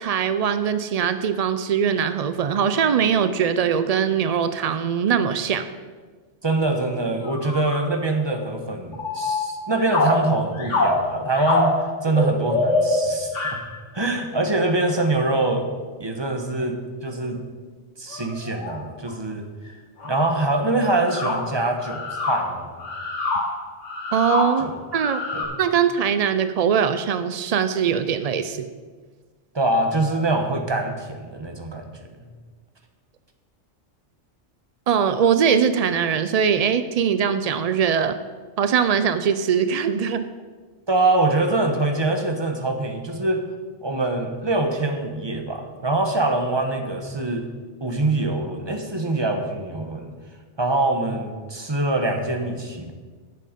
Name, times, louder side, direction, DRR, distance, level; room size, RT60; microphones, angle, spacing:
voice 1, 0.0-5.7 24.1-25.2 25.6-28.7 34.9-38.2 38.6-40.3, right 7 dB, 80° right, 11 dB, 0.3 m, -21 dB
voice 2, 6.4-11.7 12.0-13.4 13.9-15.7 16.0-16.8 17.0-17.4 18.0-19.5 20.0-22.8 24.6-24.7 25.3-25.6 29.5-31.9 40.9-43.4 43.8-47.4 47.8-50.1 50.6-52.9, right 2 dB, 25° right, 4 dB, 1.1 m, -24 dB
sound 1, 7.2-7.9 8.3-8.5 8.9-13.8 17.1-17.2 18.1-18.8 19.1-19.2 19.7-19.8 20.0-20.4 20.9-25.5, left 2 dB, 90° left, 2.1 m, -25 dB
10.5 x 7.7 x 5.2 m, 1.4 s
omnidirectional pair, 1.2 m